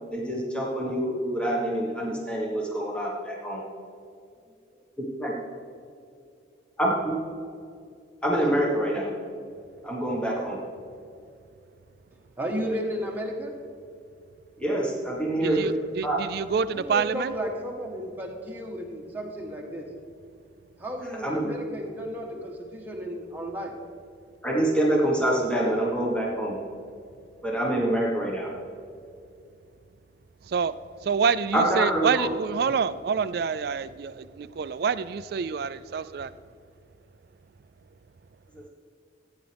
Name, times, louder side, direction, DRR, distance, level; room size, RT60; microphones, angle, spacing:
voice 1, 0.1-3.6 5.0-5.3 6.8-7.1 8.2-9.1 9.8-10.6 14.6-15.7 16.0-16.2 21.2-21.5 24.4-26.6 27.4-28.5 31.5-32.3 38.5-38.7, right 1 dB, 5° left, -4 dB, 1.4 m, -26 dB
voice 2, 12.4-13.5 16.7-19.9 20.8-23.7, equal, 10° right, -1 dB, 1.3 m, -33 dB
voice 3, 15.4-17.3 30.5-30.7 31.0-36.3, right 6 dB, 55° right, 14 dB, 0.3 m, -27 dB
15.0 x 9.2 x 3.4 m, 2.4 s
head